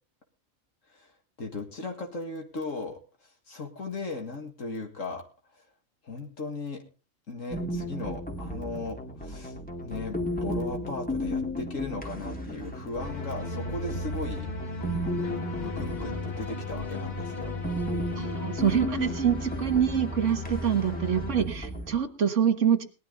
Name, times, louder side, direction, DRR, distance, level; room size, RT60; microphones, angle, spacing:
voice 1, 0.9-5.2 5.5-5.6 6.0-6.8 7.3-14.5 15.0-17.5, left 3 dB, 75° left, 2 dB, 2.3 m, -37 dB
sound 1, 7.5-22.0, equal, 5° left, 2.1 m, -35 dB
sound 2, 13.0-21.4, left 2 dB, 35° left, 1.7 m, -36 dB
voice 2, 18.2-22.8, right 8 dB, 65° right, 9 dB, 1.8 m, -26 dB
19.0 x 12.0 x 4.0 m, 0.33 s
omnidirectional pair, 1.3 m